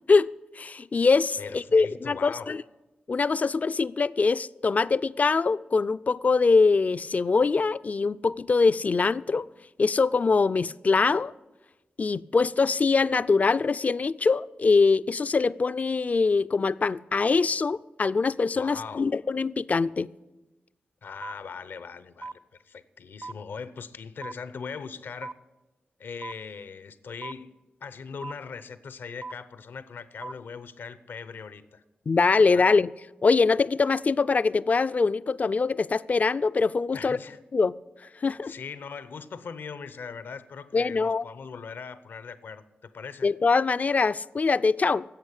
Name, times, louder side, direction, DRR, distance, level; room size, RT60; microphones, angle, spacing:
voice 1, 0.6-2.6 3.1-9.5 9.8-11.3 12.0-20.1 32.1-32.9 33.2-37.2 37.5-37.7 38.2-38.5 40.7-41.2 43.2-45.0, left 4 dB, 45° left, 0.4 m, -23 dB
voice 2, 1.4-2.6 18.5-19.1 21.0-25.3 26.0-27.5 27.8-31.8 32.5-32.7 36.9-37.4 38.4-43.3, left 5 dB, 80° left, 0.7 m, -40 dB
sound 1, 21.2-21.3 22.2-22.3 23.2-23.3 24.2-24.3 25.2-25.3 26.2-26.3 27.2-27.3 28.2-28.3 29.2-29.3 30.2-30.3, right 3 dB, 50° right, 0.7 m, -36 dB
11.5 x 8.0 x 9.9 m
cardioid pair, 55°, 3 cm